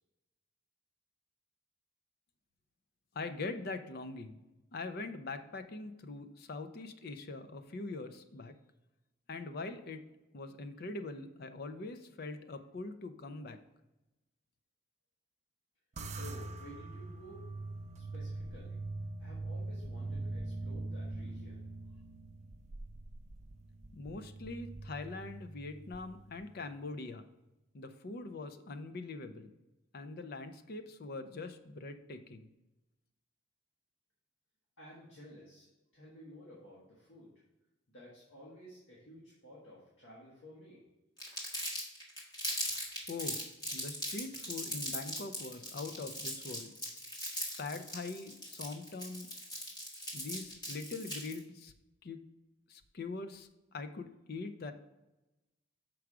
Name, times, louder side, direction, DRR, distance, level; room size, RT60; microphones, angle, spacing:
voice 1, 3.1-4.4 4.7-8.5 9.3-10.0 10.3-13.6 23.9-27.3 27.7-29.5 29.9-32.5 43.1-43.4 43.7-46.7 47.6-49.3 50.1-51.7 52.0-52.2 52.7-54.7, left 3 dB, 55° left, 9 dB, 0.5 m, -43 dB
sound 1, 16.0-26.6, right 2 dB, 35° right, 0.5 m, -43 dB
voice 2, 16.2-17.4 17.9-18.8 19.2-22.0 34.8-35.7 35.9-37.3 37.9-40.8, left 1 dB, 80° left, -6 dB, 1.7 m, -53 dB
Crumpling crinkling, 41.2-51.4, equal, 20° left, 1.7 m, -39 dB
6.1 x 4.7 x 4.8 m, 1.0 s
head